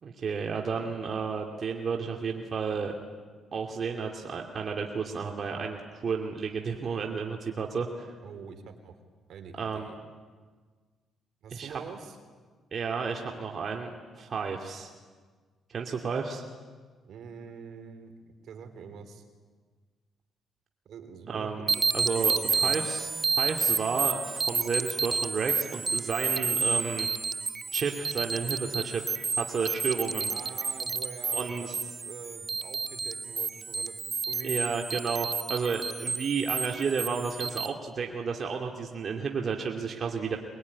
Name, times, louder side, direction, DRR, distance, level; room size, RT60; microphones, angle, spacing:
voice 1, 0.0-2.9 3.5-8.1 9.6-9.9 11.5-11.8 12.7-13.9 14.2-14.9 15.7-16.4 21.3-27.1 27.7-30.3 31.3-31.8 34.4-40.4, right 5 dB, 50° right, 1 dB, 2.6 m, -32 dB
voice 2, 8.2-9.0 9.3-10.0 11.4-12.2 17.0-19.2 20.8-22.8 30.3-33.9 34.3-34.5, right 6 dB, 70° right, 7 dB, 3.5 m, -45 dB
sound 1, 21.7-37.7, right 4 dB, 30° right, 0.9 m, -30 dB
24.0 x 21.5 x 9.8 m, 1.5 s
cardioid pair, 90°, 0 cm